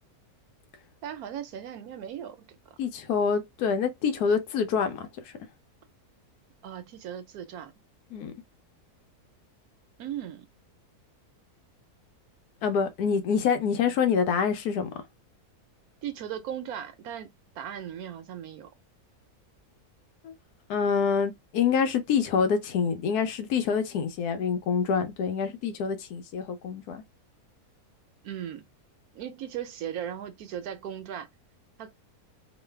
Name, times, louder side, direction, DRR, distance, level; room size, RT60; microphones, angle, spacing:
voice 1, 1.0-2.4 6.6-7.7 10.0-10.5 16.0-18.7 28.2-28.7 29.1-31.3 31.8-31.9, right 10 dB, 80° right, 1.1 m, -37 dB
voice 2, 2.8-5.3 8.1-8.3 12.6-14.9 20.2-20.3 20.7-27.0, left 6 dB, 85° left, 1.2 m, -26 dB
3.1 x 2.2 x 3.2 m
omnidirectional pair, 1.6 m